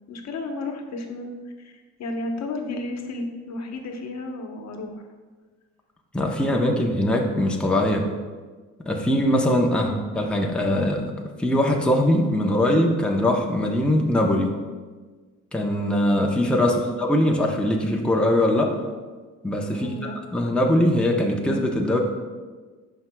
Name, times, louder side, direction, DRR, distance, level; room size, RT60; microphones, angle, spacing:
voice 1, 0.1-5.0 6.4-6.9 9.7-10.0 16.6-16.9 19.7-20.1, left 2 dB, 60° left, 3 dB, 1.1 m, -33 dB
voice 2, 6.1-8.1 8.9-11.1 11.4-14.5 15.5-18.7 19.4-19.9 20.3-22.0, left 1 dB, 5° left, 0 dB, 0.8 m, -21 dB
12.0 x 4.6 x 2.3 m, 1.4 s
cardioid pair, 90°, 30 cm